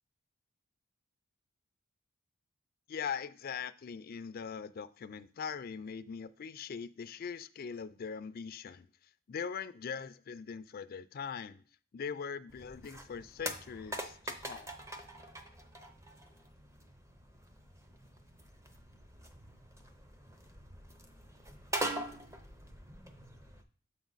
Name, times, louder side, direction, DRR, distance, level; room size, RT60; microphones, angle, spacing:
voice 1, 2.9-8.9 9.3-11.6 11.9-14.7, left 6 dB, 45° left, 0.3 m, -41 dB
sound 1, 12.5-23.6, right 1 dB, 15° right, 0.6 m, -43 dB
7.2 x 4.6 x 3.9 m
head